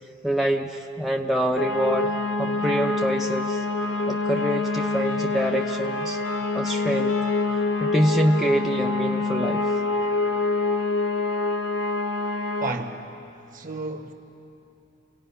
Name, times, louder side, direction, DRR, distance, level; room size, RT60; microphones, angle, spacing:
voice 1, 0.2-2.1 2.4-3.6 4.1-6.2 6.5-7.1 7.8-9.6, equal, ahead, 0.5 m, -25 dB
sound 1, 1.6-12.7, left 3 dB, 70° left, 1.0 m, -26 dB
Trumpet, 3.8-10.8, left 3 dB, 90° left, 2.4 m, -43 dB
voice 2, 12.6-13.1 13.5-14.1, right 2 dB, 45° right, 1.2 m, -32 dB
27.5 x 18.0 x 5.6 m
head